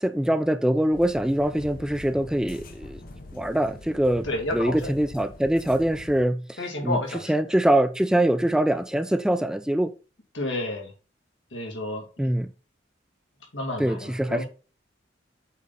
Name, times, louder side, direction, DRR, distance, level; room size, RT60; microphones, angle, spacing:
voice 1, 0.0-3.0 3.3-4.3 4.5-7.0 7.3-9.9 12.2-12.5 13.8-14.5, right 1 dB, 5° right, 0.3 m, -23 dB
sound 1, 0.9-6.2, left 2 dB, 50° left, 1.0 m, -44 dB
voice 2, 4.2-4.9 6.6-7.3 10.3-10.9 11.5-12.3 13.5-14.5, left 1 dB, 75° left, 2.6 m, -31 dB
8.2 x 3.9 x 4.1 m
head